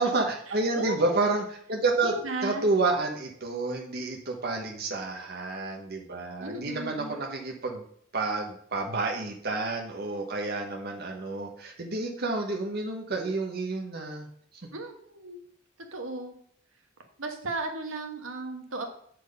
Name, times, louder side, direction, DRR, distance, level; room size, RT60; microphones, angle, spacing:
voice 1, 0.0-2.1 2.4-7.9 8.1-14.3, right 3 dB, 55° right, 1 dB, 1.2 m, -29 dB
voice 2, 0.7-1.3 2.0-2.7 6.4-7.2 14.7-15.4 15.9-16.3 17.2-18.9, right 2 dB, 75° right, 4 dB, 1.4 m, -35 dB
8.3 x 4.6 x 5.4 m, 0.63 s
head